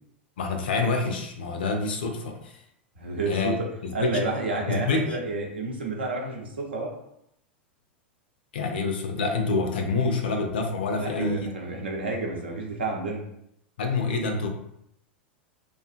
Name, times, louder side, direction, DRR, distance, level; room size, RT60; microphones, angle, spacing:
voice 1, 0.4-2.5 3.1-3.5 3.8-4.2 4.7-5.2 8.5-11.8 13.8-14.5, left 3 dB, 60° left, 4 dB, 0.4 m, -27 dB
voice 2, 3.0-3.5 3.9-6.9 10.9-13.2, right 2 dB, 70° right, 0 dB, 0.6 m, -30 dB
2.4 x 2.3 x 2.4 m, 0.75 s
figure-of-eight pair, 90°, 6 cm